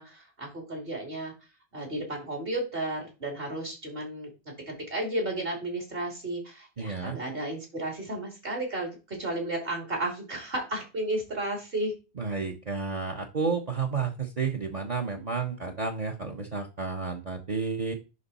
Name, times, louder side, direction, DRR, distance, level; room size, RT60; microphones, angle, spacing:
voice 1, 0.0-1.3 1.7-4.3 4.7-11.9, right 1 dB, 60° right, 1 dB, 2.9 m, -33 dB
voice 2, 6.8-7.2 12.2-17.9, right 5 dB, 40° right, 5 dB, 0.9 m, -31 dB
10.5 x 3.6 x 4.0 m, 0.29 s
omnidirectional pair, 1.1 m